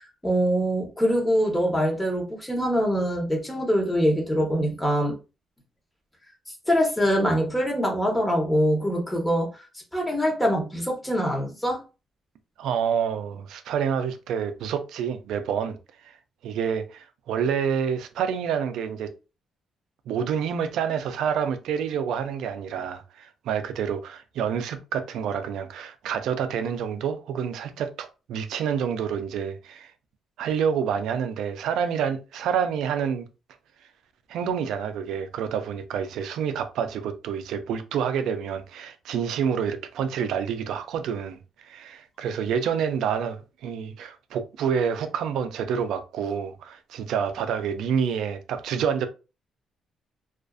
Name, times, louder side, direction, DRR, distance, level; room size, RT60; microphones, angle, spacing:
voice 1, 0.0-5.1 6.7-9.6 9.9-11.8, equal, 10° left, 1.0 m, -24 dB
voice 2, 12.6-16.1 16.4-19.1 20.1-29.9 30.4-33.3 34.3-49.1, right 7 dB, 80° right, 0.4 m, -28 dB
2.4 x 2.4 x 2.3 m
cardioid pair, 90°, 0 cm